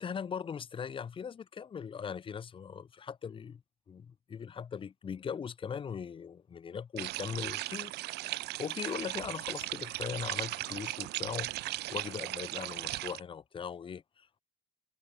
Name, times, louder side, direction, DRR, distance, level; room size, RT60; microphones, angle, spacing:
voice 1, 0.0-3.6 3.9-7.9 8.6-14.4, left 7 dB, 30° left, 0.7 m, -40 dB
sound 1, 7.0-13.2, right 18 dB, 75° right, 0.7 m, -37 dB
cardioid pair, 110°, 17 cm